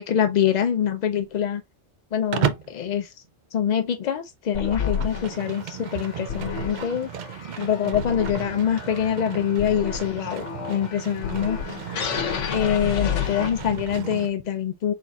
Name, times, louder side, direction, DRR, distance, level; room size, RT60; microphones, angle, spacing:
voice 1, 0.0-1.6 2.1-3.1 3.5-7.1 7.6-11.6 12.5-14.9, left 9 dB, 65° left, 0.4 m, -25 dB
Livestock farm animals working animals, 2.3-2.8 4.5-14.3, right 9 dB, 60° right, 0.4 m, -34 dB
sound 1, 4.5-14.0, left 7 dB, 80° left, 1.1 m, -31 dB
4.1 x 3.9 x 2.3 m
omnidirectional pair, 1.2 m